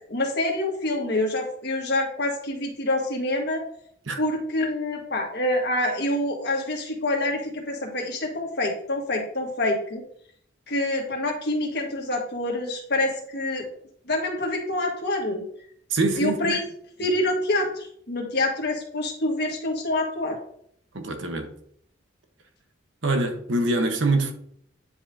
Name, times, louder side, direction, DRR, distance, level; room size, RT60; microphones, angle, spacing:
voice 1, 0.1-3.6 4.2-10.0 10.7-13.7 14.1-15.4 16.1-16.6 17.0-20.4, left 1 dB, 55° left, 1.6 m, -26 dB
voice 2, 15.9-16.6 20.9-21.5 23.0-24.3, right 2 dB, 70° right, 1.1 m, -24 dB
9.6 x 5.5 x 2.7 m
head